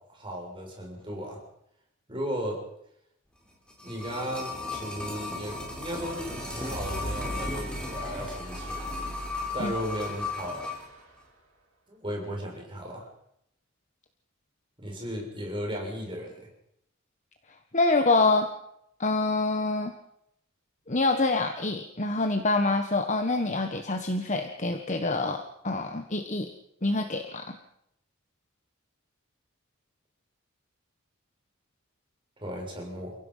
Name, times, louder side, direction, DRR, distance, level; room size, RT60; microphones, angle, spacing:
voice 1, 0.1-1.4 2.1-2.6 3.8-8.9 9.5-10.6 11.9-13.1 14.8-16.5 32.4-33.1, equal, 25° right, 0 dB, 6.7 m, -35 dB
sound 1, 3.5-10.9 11.2-11.3, left 3 dB, 5° left, 4.7 m, -36 dB
sound 2, 5.3-11.2, right 1 dB, 80° right, 7.0 m, -41 dB
voice 2, 17.7-18.5 19.0-19.9 20.9-26.5 26.8-27.6, left 3 dB, 35° left, 5 dB, 1.5 m, -26 dB
30.0 x 16.5 x 5.7 m, 0.77 s
head